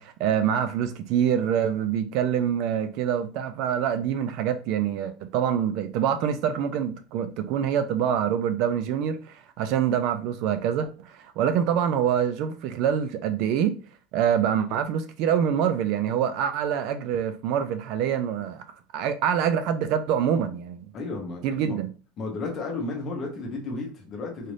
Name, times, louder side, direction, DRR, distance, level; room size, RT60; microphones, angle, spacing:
voice 1, 0.0-13.7 14.1-18.6 18.9-20.9 21.4-21.9, right 8 dB, 45° right, 0.3 m, -25 dB
voice 2, 20.9-21.8 22.2-24.5, left 3 dB, 25° left, 0.8 m, -33 dB
4.0 x 2.5 x 3.2 m
cardioid pair, 180°, 0 cm